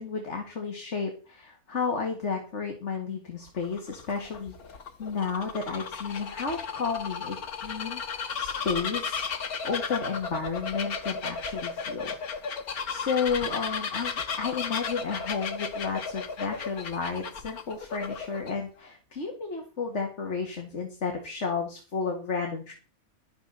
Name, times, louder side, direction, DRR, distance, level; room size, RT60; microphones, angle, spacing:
voice 1, 0.0-9.3 9.6-12.1 12.9-22.7, left 5 dB, 50° left, 3 dB, 2.4 m, -32 dB
Bird vocalization bird call bird song, 3.5-18.5, left 5 dB, 90° left, 1.9 m, -34 dB
12.0 x 12.0 x 4.1 m, 0.36 s
omnidirectional pair, 1.5 m